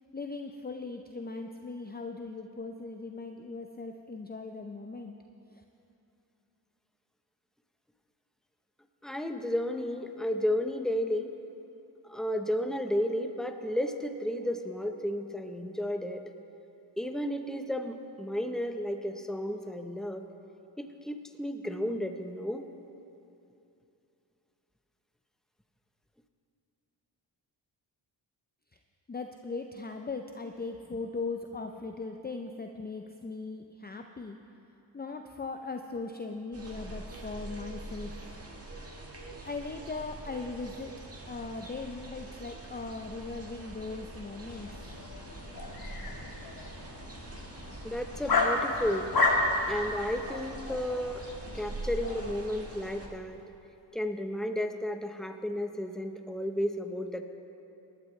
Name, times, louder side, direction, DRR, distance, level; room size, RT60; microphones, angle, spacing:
voice 1, 0.1-5.1 5.5-5.6 29.1-34.4 34.9-38.2 39.4-40.9 41.3-44.8, left 3 dB, 20° left, 4 dB, 0.6 m, -39 dB
voice 2, 9.0-11.3 12.0-16.3 17.0-20.3 20.8-22.7 47.8-49.1 49.7-51.2 51.5-53.4 53.9-57.2, left 1 dB, ahead, 5 dB, 0.9 m, -33 dB
sound 1, 36.5-53.1, right 2 dB, 30° right, 1.8 m, -44 dB
sound 2, 44.5-52.3, left 2 dB, 45° left, 1.9 m, -32 dB
19.0 x 12.0 x 3.3 m, 2.9 s
cardioid pair, 50°, 48 cm